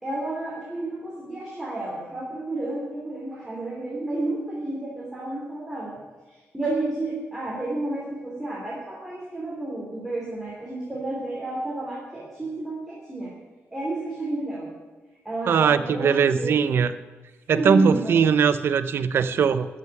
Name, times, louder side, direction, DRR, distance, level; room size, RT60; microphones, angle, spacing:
voice 1, 0.0-5.9 6.3-13.3 13.7-14.7 15.2-16.6 17.5-18.1, right 2 dB, 10° right, -6 dB, 3.0 m, -31 dB
voice 2, 15.5-16.9 17.5-19.7, right 6 dB, 55° right, 12 dB, 0.7 m, -20 dB
14.0 x 6.5 x 10.0 m, 1.3 s
wide cardioid pair, 180°, 5 cm